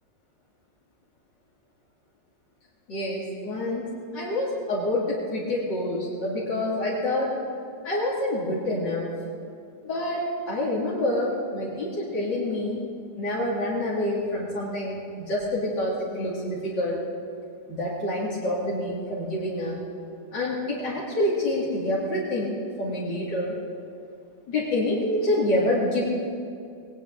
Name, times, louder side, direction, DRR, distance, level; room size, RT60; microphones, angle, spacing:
voice 1, 2.9-3.9 4.1-7.3 7.8-9.1 9.8-12.8 13.1-17.0 17.7-19.8 20.3-22.5 22.8-23.5 24.5-26.0, left 1 dB, 85° left, -7 dB, 3.2 m, -27 dB
20.0 x 18.0 x 3.9 m, 2.6 s
omnidirectional pair, 1.8 m